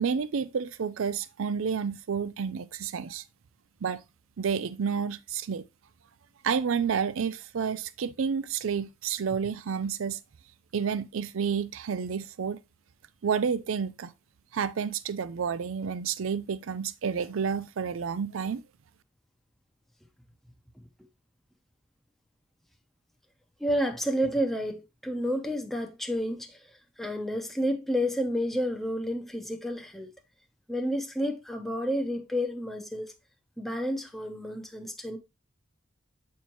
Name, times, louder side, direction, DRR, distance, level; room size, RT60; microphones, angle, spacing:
voice 1, 0.0-3.2 3.8-4.0 4.4-5.6 6.4-10.2 10.7-12.6 13.2-14.1 14.5-18.6, right 6 dB, 85° right, 0.5 m, -30 dB
voice 2, 23.6-26.6 27.0-30.1 30.7-33.1 33.6-35.2, equal, ahead, 0.7 m, -30 dB
8.1 x 4.6 x 3.0 m
head